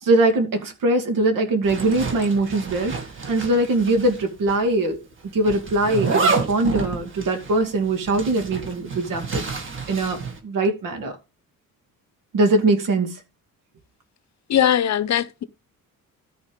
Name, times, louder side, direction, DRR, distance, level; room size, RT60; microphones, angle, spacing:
voice 1, 0.0-2.9 3.3-5.0 5.3-9.4 9.9-11.1 12.3-13.2, right 2 dB, 65° right, 2.6 m, -21 dB
Zipper (clothing), 1.6-4.2 4.5-4.6 5.4-10.4, right 4 dB, 35° right, 2.0 m, -28 dB
voice 2, 14.5-15.4, left 10 dB, 50° left, 0.8 m, -20 dB
13.5 x 4.5 x 5.3 m
cardioid pair, 160°, 35 cm